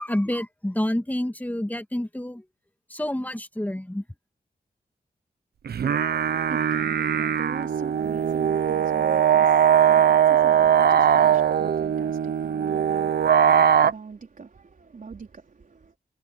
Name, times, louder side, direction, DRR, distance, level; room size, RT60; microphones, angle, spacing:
voice 1, 0.0-2.4 2.9-4.0, left 1 dB, 10° left, 2.6 m, -28 dB
sound 1, 5.7-13.9, right 9 dB, 90° right, 1.0 m, -20 dB
voice 2, 6.0-15.9, right 5 dB, 60° right, 4.1 m, -42 dB
cardioid pair, 70°, 16 cm